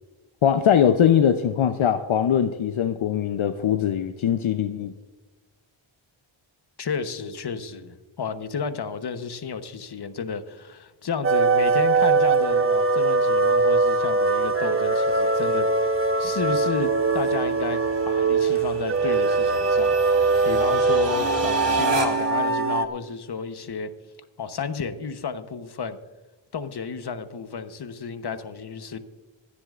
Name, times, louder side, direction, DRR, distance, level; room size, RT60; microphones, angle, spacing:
voice 1, 0.4-4.9, left 9 dB, 70° left, 8 dB, 0.8 m, -21 dB
voice 2, 6.8-23.9 24.4-26.0 26.5-29.0, left 6 dB, 50° left, 10 dB, 1.1 m, -32 dB
sound 1, 11.2-22.8, right 3 dB, 25° right, 0.9 m, -21 dB
sound 2, 12.2-22.4, right 3 dB, 55° right, 1.6 m, -35 dB
27.0 x 9.9 x 2.5 m, 1.2 s
wide cardioid pair, 80°, 50 cm